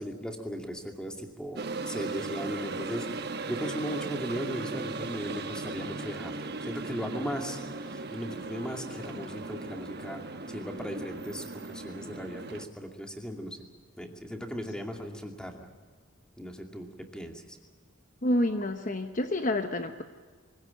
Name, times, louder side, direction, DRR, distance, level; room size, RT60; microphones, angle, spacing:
voice 1, 0.0-3.2 3.5-13.6 14.0-15.7 16.4-17.4, equal, 5° left, 3 dB, 2.4 m, -37 dB
sound 1, 1.6-12.7, right 3 dB, 50° right, 1.2 m, -37 dB
voice 2, 18.2-20.0, left 1 dB, 40° left, 7 dB, 1.0 m, -28 dB
24.0 x 16.5 x 8.7 m, 1.5 s
head